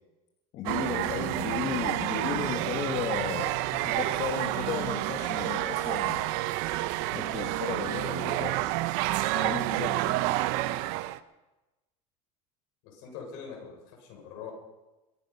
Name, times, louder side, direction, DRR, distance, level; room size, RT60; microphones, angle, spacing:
voice 1, 0.5-6.3 7.1-8.6 9.3-10.2, left 8 dB, 45° left, 3 dB, 1.5 m, -35 dB
sound 1, 0.7-11.2, right 16 dB, 65° right, 0.8 m, -29 dB
voice 2, 12.8-14.5, left 6 dB, 65° left, 1 dB, 6.5 m, -43 dB
23.0 x 10.0 x 5.5 m, 1.0 s
supercardioid pair, 140°, 17 cm